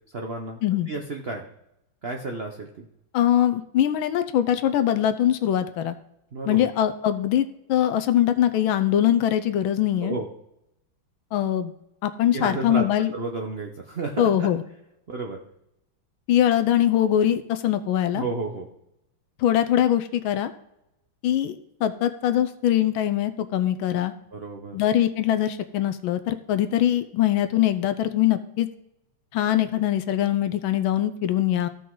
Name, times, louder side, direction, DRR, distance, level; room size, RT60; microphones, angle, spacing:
voice 1, 0.1-0.6 0.9-1.4 2.0-2.9 6.3-6.7 10.0-10.3 12.3-12.8 13.1-14.5 15.1-15.4 18.1-18.7 24.3-24.8, right 3 dB, 90° right, 3 dB, 0.5 m, -31 dB
voice 2, 3.1-5.9 6.5-10.1 11.3-11.7 12.0-13.1 14.2-14.6 16.3-18.2 19.4-20.5 21.2-21.6 21.8-24.1 24.7-28.7 29.3-31.7, left 11 dB, 75° left, 11 dB, 1.4 m, -22 dB
14.5 x 5.4 x 3.8 m, 0.83 s
omnidirectional pair, 2.4 m